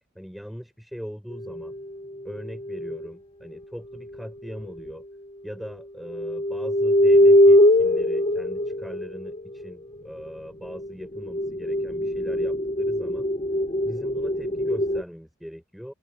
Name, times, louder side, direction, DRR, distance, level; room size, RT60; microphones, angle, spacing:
voice 1, 0.0-1.7 2.2-5.0 5.4-13.3 13.8-15.9, equal, ahead, 4.8 m, -40 dB
sound 1, 1.4-3.1 4.6-4.7 6.1-9.7 10.6-15.0, left 1 dB, 30° left, 0.8 m, -22 dB
open air
head